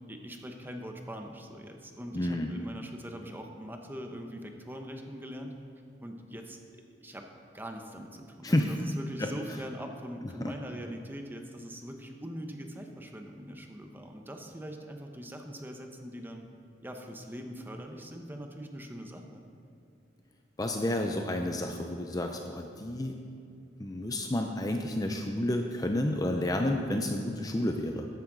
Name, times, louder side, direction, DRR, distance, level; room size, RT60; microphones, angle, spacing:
voice 1, 0.0-5.5 6.0-6.6 7.0-7.3 7.5-16.5 16.8-19.4 26.7-27.1, equal, 10° right, 3 dB, 0.9 m, -42 dB
voice 2, 2.1-2.5 8.4-8.7 9.2-9.3 10.4-10.5 20.6-23.2 23.8-28.1, left 1 dB, 20° left, 3 dB, 0.5 m, -30 dB
13.5 x 11.0 x 3.9 m, 2.4 s
head